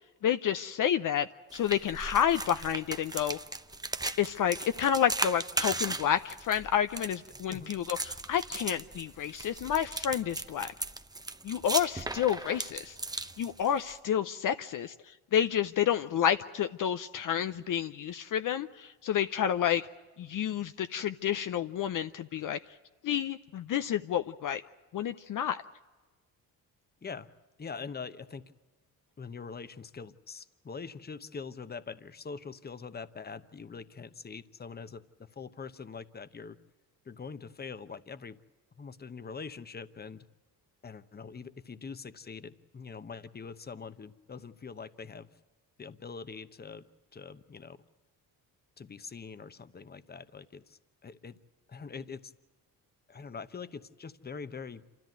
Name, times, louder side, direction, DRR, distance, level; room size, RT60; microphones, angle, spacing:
voice 1, 0.2-3.4 4.2-10.7 11.4-13.0 13.4-19.9 20.2-22.6 23.0-24.6 24.9-25.6, left 9 dB, 55° left, 10 dB, 0.7 m, -30 dB
sound 1, 1.5-13.9, right 2 dB, 10° right, 0.8 m, -37 dB
voice 2, 27.6-28.5 29.2-36.6 37.0-38.4 38.8-40.2 40.8-45.3 45.8-46.9 47.1-47.8 48.8-51.4 51.7-52.3 53.1-54.8, left 5 dB, 25° left, 13 dB, 1.0 m, -43 dB
27.0 x 14.0 x 9.2 m, 1.2 s
cardioid pair, 75°, 38 cm